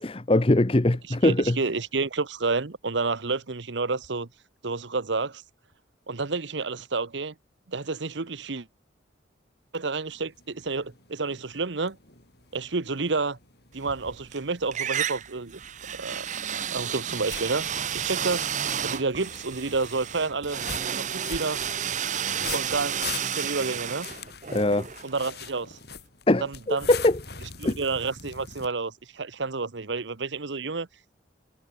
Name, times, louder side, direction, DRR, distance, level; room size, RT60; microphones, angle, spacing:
voice 1, 0.0-1.6 24.5-24.9 26.3-27.2 27.6-27.8, left 2 dB, 30° left, 0.7 m, -22 dB
voice 2, 1.2-4.3 4.6-5.4 6.1-7.3 7.7-8.7 9.7-12.0 12.5-13.4 13.7-15.6 15.9-17.7 17.9-18.5 18.8-21.6 22.5-24.1 25.0-25.8 26.4-26.9 27.6-30.9, right 3 dB, 70° right, 1.0 m, -30 dB
sound 1, 10.1-28.7, left 6 dB, 55° left, 6.6 m, -43 dB
sound 2, 13.8-14.4 14.7-25.6, right 8 dB, 40° right, 0.7 m, -32 dB
head